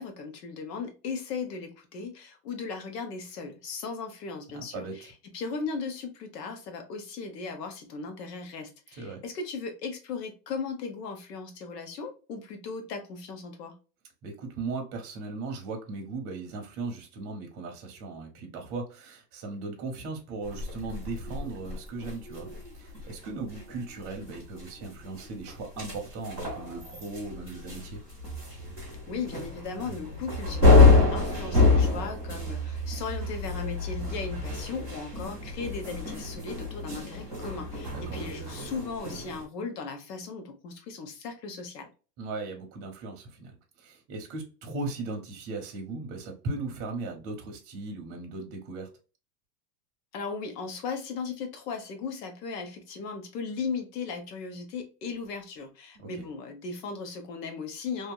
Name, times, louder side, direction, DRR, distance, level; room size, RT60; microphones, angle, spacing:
voice 1, 0.0-13.7 29.1-41.9 50.1-58.1, left 4 dB, 75° left, 1.2 m, -37 dB
voice 2, 4.7-5.1 9.0-9.2 14.2-22.5 22.7-28.0 37.9-38.2 42.2-43.5 43.8-48.9 55.9-56.2, right 3 dB, 30° right, 0.8 m, -37 dB
sound 1, 20.4-39.4, left 3 dB, 5° left, 0.3 m, -27 dB
2.8 x 2.6 x 2.2 m
supercardioid pair, 160°, 48 cm